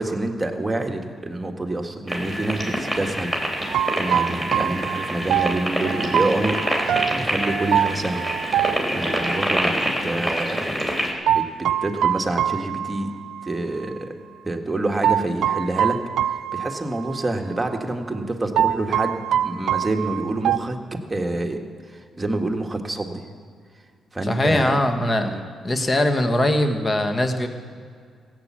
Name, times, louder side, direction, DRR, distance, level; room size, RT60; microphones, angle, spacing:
voice 1, 0.0-6.6 7.1-8.3 8.9-10.7 11.3-13.1 13.4-14.1 14.4-16.0 16.5-20.8 21.1-21.6 21.9-23.2 24.1-24.8 25.2-25.4, right 2 dB, 20° right, 3 dB, 1.6 m, -27 dB
sound 1, 2.1-11.1, equal, 10° left, 3.4 m, -26 dB
sound 2, 3.7-9.5 11.3-13.5 13.8-13.9 15.0-17.3 17.6-17.7 18.6-20.6, right 10 dB, 80° right, 0.4 m, -24 dB
voice 2, 24.2-25.3 25.6-27.5, left 1 dB, 30° left, 6 dB, 1.6 m, -21 dB
16.5 x 8.3 x 7.5 m, 2.1 s
cardioid pair, 70°, 0 cm